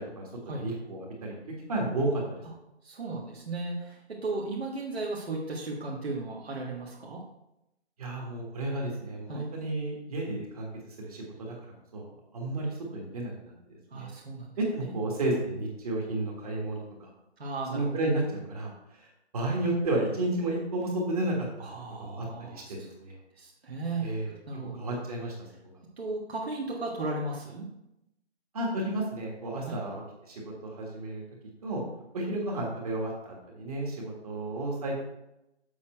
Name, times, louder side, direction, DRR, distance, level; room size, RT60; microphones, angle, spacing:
voice 1, 0.5-1.3 1.7-2.2 8.0-10.7 11.0-11.5 11.9-12.1 12.3-14.1 14.6-17.1 17.7-19.1 19.3-21.7 22.0-23.2 24.0-24.3 24.7-25.5 28.5-31.2 31.6-31.8 32.1-35.0, right 2 dB, 35° right, -1 dB, 1.6 m, -32 dB
voice 2, 2.8-7.2 9.3-9.5 13.9-14.6 14.8-15.0 17.4-17.8 21.6-22.9 23.3-24.8 26.0-27.7 29.6-29.8, right 2 dB, 60° right, -3 dB, 1.6 m, -35 dB
7.2 x 6.1 x 4.4 m, 0.87 s
hypercardioid pair, 165°, 34 cm